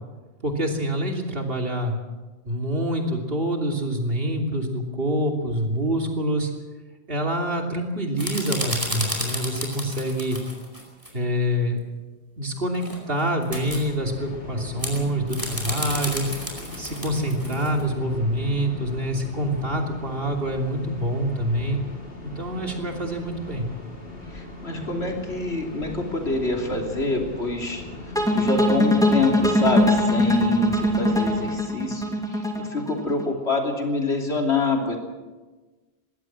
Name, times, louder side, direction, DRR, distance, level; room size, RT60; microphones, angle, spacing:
voice 1, 0.4-2.0 2.4-6.5 7.1-10.4 11.1-11.8 12.4-16.3 16.8-21.8 22.4-23.7, equal, 60° right, 2 dB, 3.3 m, -26 dB
sound 1, 8.2-11.1 12.7-13.8 14.8-17.8, equal, 20° right, 5.0 m, -32 dB
sound 2, 13.5-31.6, left 2 dB, 60° left, 4.3 m, -39 dB
voice 2, 24.3-32.0 32.3-35.0, left 3 dB, 80° left, 1 dB, 3.5 m, -26 dB
sound 3, 28.1-33.2, left 1 dB, 5° left, 2.8 m, -21 dB
21.5 x 16.5 x 7.6 m, 1.2 s
omnidirectional pair, 1.1 m